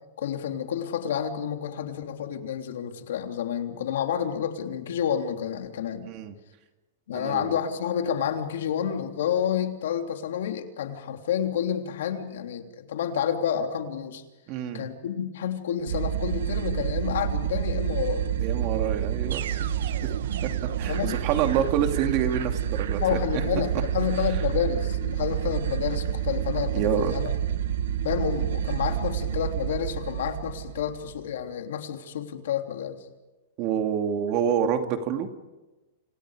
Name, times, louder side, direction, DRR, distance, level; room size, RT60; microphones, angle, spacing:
voice 1, 0.2-6.1 7.1-14.2 14.7-18.3 20.9-21.2 21.6-21.7 23.0-27.3 28.0-33.0, left 9 dB, 75° left, 4 dB, 3.2 m, -29 dB
voice 2, 6.0-6.3 7.1-7.6 14.5-14.8 18.4-19.9 20.8-23.2 26.7-27.2 33.6-35.4, right 8 dB, 35° right, 5 dB, 2.6 m, -27 dB
sound 1, 15.9-31.2, right 9 dB, 75° right, 1.5 m, -28 dB
29.5 x 29.5 x 5.1 m, 1.1 s
supercardioid pair, 165°, 0 cm